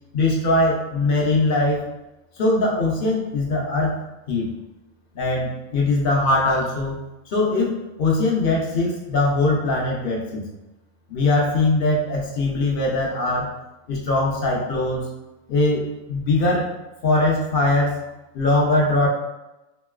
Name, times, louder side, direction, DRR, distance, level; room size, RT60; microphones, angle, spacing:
voice 1, 0.1-1.9 2.4-4.0 4.3-4.5 5.2-7.0 7.3-7.7 8.0-10.4 11.1-13.5 13.9-15.0 15.5-16.7 17.0-18.0 18.3-19.1, left 2 dB, 55° left, -2 dB, 0.6 m, -21 dB
3.0 x 2.8 x 2.3 m, 0.99 s
omnidirectional pair, 1.4 m